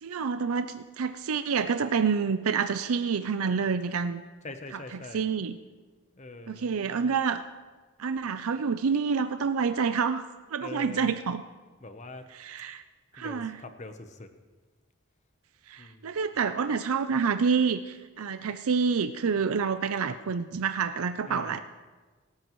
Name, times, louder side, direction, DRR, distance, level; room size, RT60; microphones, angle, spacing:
voice 1, 0.0-4.2 5.1-5.6 6.5-7.4 8.0-10.2 10.5-11.4 12.3-12.8 13.1-13.6 15.7-21.6, right 5 dB, 80° right, 10 dB, 0.5 m, -28 dB
voice 2, 4.4-5.3 6.2-7.2 10.6-11.1 11.8-12.3 12.6-12.7 13.1-14.3 15.8-16.3 21.3-21.6, left 2 dB, 30° left, 8 dB, 0.9 m, -44 dB
25.0 x 13.0 x 3.1 m, 1.3 s
head